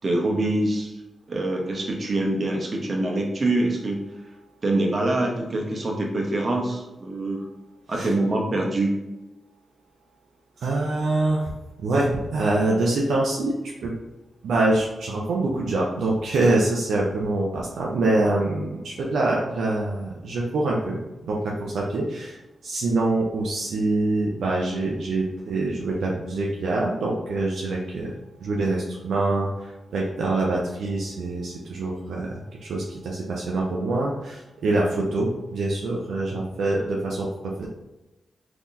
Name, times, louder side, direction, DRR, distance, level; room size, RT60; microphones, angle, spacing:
voice 1, 0.0-0.9 1.3-4.0 4.6-7.4 7.9-8.9, right 2 dB, 50° right, 0 dB, 0.9 m, -24 dB
voice 2, 10.6-11.4 11.8-13.9 14.4-21.0 21.2-28.1 28.4-32.3 32.6-37.7, right 2 dB, 80° right, -2 dB, 0.5 m, -25 dB
3.6 x 2.9 x 2.5 m, 0.98 s
supercardioid pair, 45°, 0 cm